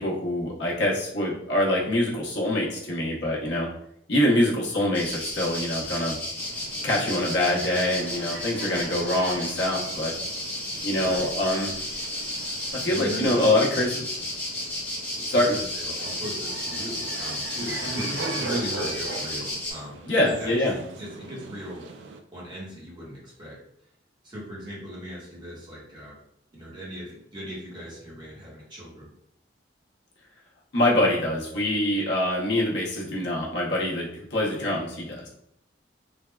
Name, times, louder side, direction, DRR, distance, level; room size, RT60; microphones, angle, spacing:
voice 1, 0.0-3.7 4.1-6.2 6.8-10.1 10.8-11.7 12.7-14.0 15.3-15.5 17.8-18.1 20.1-20.7 30.7-35.3, left 1 dB, 70° left, -3 dB, 0.8 m, -25 dB
sound 1, 4.9-19.7, left 1 dB, 10° left, 1.0 m, -33 dB
sound 2, 6.4-22.2, right 4 dB, 70° right, 0.3 m, -41 dB
voice 2, 10.9-11.3 12.9-13.5 15.3-22.0 22.3-23.6 24.2-26.2 26.5-29.1, equal, 25° right, -6 dB, 1.0 m, -38 dB
3.3 x 2.2 x 2.2 m, 0.74 s
head